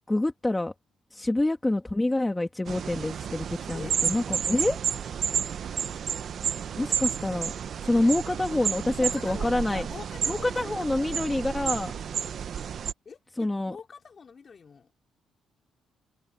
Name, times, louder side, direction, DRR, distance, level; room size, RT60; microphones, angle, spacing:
voice 1, 0.1-0.7 1.1-4.8 6.8-7.5 7.8-9.9 10.3-11.9 13.4-13.8, left 2 dB, 15° left, 1.7 m, -27 dB
sound 1, 2.7-12.9, right 8 dB, 60° right, 1.0 m, -31 dB
voice 2, 9.0-11.0 13.0-14.9, left 5 dB, 40° left, 4.9 m, -45 dB
cardioid pair, 90°, 0 cm